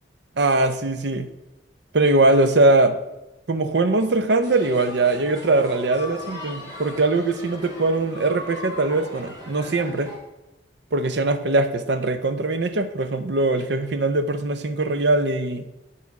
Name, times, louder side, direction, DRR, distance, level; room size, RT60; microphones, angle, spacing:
voice 1, 0.4-1.3 1.9-3.0 3.5-10.1 10.9-15.6, right 2 dB, 65° right, 9 dB, 0.6 m, -21 dB
sound 1, 4.4-10.1, left 1 dB, 20° right, 2.3 m, -39 dB
9.4 x 4.2 x 4.7 m, 0.96 s
head